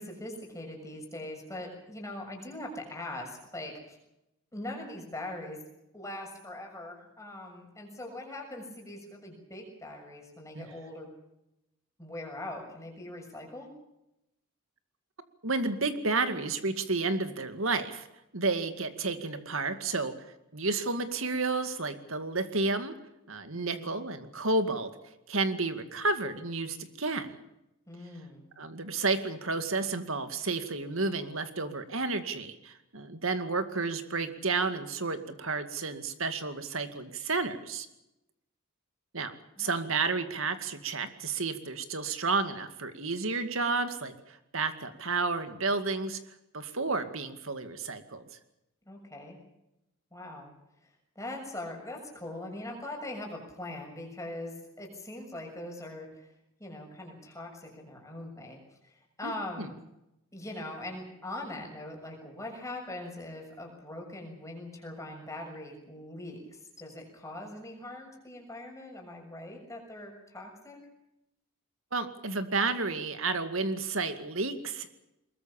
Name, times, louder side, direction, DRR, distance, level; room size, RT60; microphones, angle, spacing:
voice 1, 0.0-4.0 4.5-5.6 5.9-11.1 12.0-13.7 23.5-24.0 27.9-28.5 39.6-39.8 48.8-49.4 50.1-50.5 50.8-56.3 56.6-58.6 58.8-59.7 60.3-70.8, left 1 dB, 15° left, 1 dB, 6.8 m, -41 dB
voice 2, 15.4-18.1 18.3-20.1 20.5-22.9 23.3-24.9 25.3-27.4 28.6-37.9 39.1-46.2 46.5-48.2 59.2-59.7 71.9-74.9, right 3 dB, 65° right, 9 dB, 2.2 m, -31 dB
23.0 x 21.5 x 7.2 m, 0.88 s
head